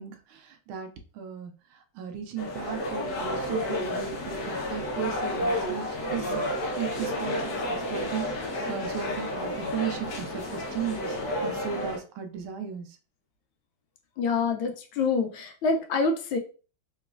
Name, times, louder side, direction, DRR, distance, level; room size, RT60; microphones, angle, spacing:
voice 1, 0.0-6.4 6.8-11.2 11.4-13.0, right 8 dB, 80° right, 6 dB, 1.4 m, -36 dB
sound 1, 2.4-12.0, left 1 dB, 60° left, 1.1 m, -31 dB
voice 2, 14.2-16.4, left 4 dB, 75° left, 4 dB, 1.4 m, -26 dB
3.9 x 3.0 x 2.4 m, 0.36 s
omnidirectional pair, 2.3 m